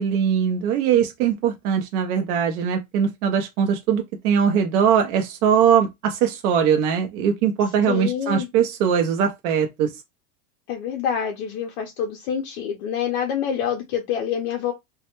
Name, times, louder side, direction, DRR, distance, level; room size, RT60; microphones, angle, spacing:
voice 1, 0.0-9.9, right 8 dB, 75° right, 0.6 m, -21 dB
voice 2, 7.9-8.5 10.7-14.7, left 8 dB, 45° left, 0.5 m, -26 dB
2.2 x 2.0 x 2.9 m
supercardioid pair, 160°, 44 cm